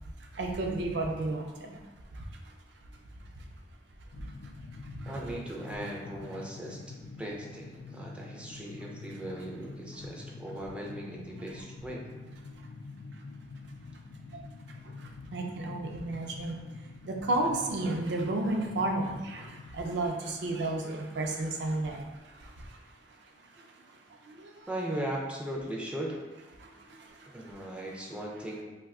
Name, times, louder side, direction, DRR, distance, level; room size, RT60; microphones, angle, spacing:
voice 1, 0.3-1.7 14.3-14.4 15.3-16.6 17.1-22.1 24.3-24.5, right 2 dB, 70° right, 2 dB, 0.4 m, -32 dB
sound 1, 4.1-19.7, left 3 dB, 80° left, 0.3 m, -46 dB
voice 2, 5.0-6.8 7.2-12.1 24.7-26.2 27.3-28.6, right 1 dB, 5° right, -2 dB, 0.3 m, -38 dB
2.6 x 2.2 x 3.5 m, 1.2 s
head